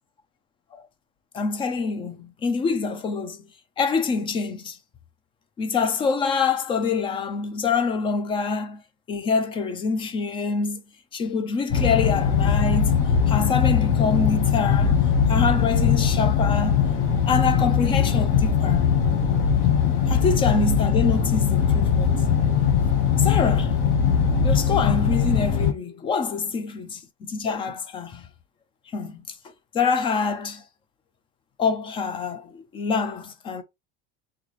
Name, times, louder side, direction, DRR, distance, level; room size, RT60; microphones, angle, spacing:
voice 1, 1.3-3.4 3.8-4.8 5.6-8.8 9.1-10.8 11.1-13.0 13.3-15.0 15.3-16.8 17.3-18.9 20.1-22.2 23.2-23.8 24.4-28.3 28.9-29.4 29.7-30.6 31.6-33.6, left 5 dB, 20° left, 0.4 m, -26 dB
sound 1, 11.7-25.7, left 7 dB, 45° left, 1.0 m, -20 dB
4.0 x 3.2 x 3.0 m
cardioid pair, 170°, 29 cm